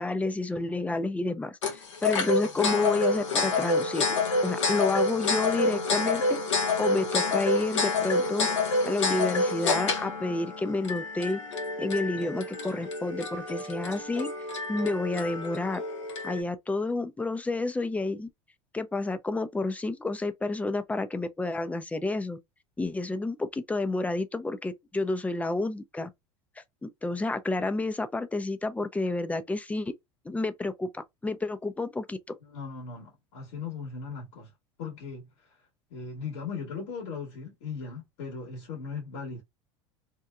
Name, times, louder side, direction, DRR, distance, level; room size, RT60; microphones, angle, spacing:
voice 1, 0.0-4.1 4.4-6.4 6.8-8.5 8.8-11.4 11.8-14.3 14.7-15.8 16.2-18.3 18.7-22.4 22.8-26.1 26.8-29.9 30.3-32.2, left 2 dB, 10° left, 0.4 m, -30 dB
sound 1, 1.6-16.4, left 3 dB, 90° left, 0.8 m, -28 dB
voice 2, 32.4-34.5 34.8-35.3 35.9-39.4, left 5 dB, 70° left, 1.4 m, -38 dB
2.9 x 2.2 x 2.3 m
hypercardioid pair, 90°, 15 cm